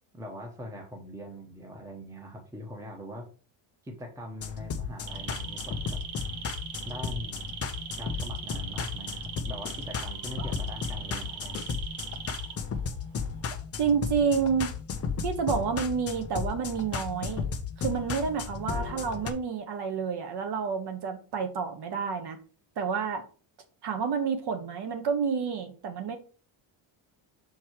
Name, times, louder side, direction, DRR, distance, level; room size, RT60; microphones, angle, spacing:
voice 1, 0.1-3.3 3.8-6.0 6.8-7.6 8.0-11.7, equal, 5° right, 1 dB, 1.0 m, -42 dB
sound 1, 4.4-19.3, left 6 dB, 30° left, 0.7 m, -34 dB
sound 2, 5.1-12.9 13.2-13.6, right 7 dB, 80° right, 1.5 m, -40 dB
voice 2, 13.8-14.7 15.2-17.4 17.8-22.4 22.8-23.2 23.8-26.2, right 6 dB, 50° right, 6 dB, 1.3 m, -29 dB
6.0 x 4.6 x 4.5 m, 0.37 s
cardioid pair, 170°, 49 cm